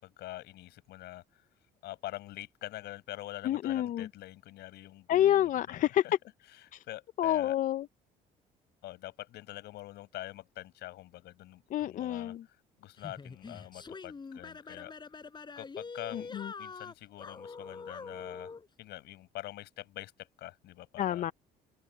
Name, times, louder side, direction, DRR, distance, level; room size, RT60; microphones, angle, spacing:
voice 1, 0.0-1.4 1.8-5.8 6.9-7.6 8.8-12.3 12.8-14.9 15.6-16.3 16.6-18.5 18.8-21.2, left 16 dB, 80° left, 6.3 m, -45 dB
voice 2, 3.4-4.1 5.1-6.0 6.7-6.8 7.2-7.9 11.7-12.4 16.1-16.5 21.0-21.3, left 12 dB, 50° left, 0.4 m, -28 dB
sound 1, 13.0-18.7, left 4 dB, 25° left, 3.9 m, -44 dB
cardioid pair, 110°, 17 cm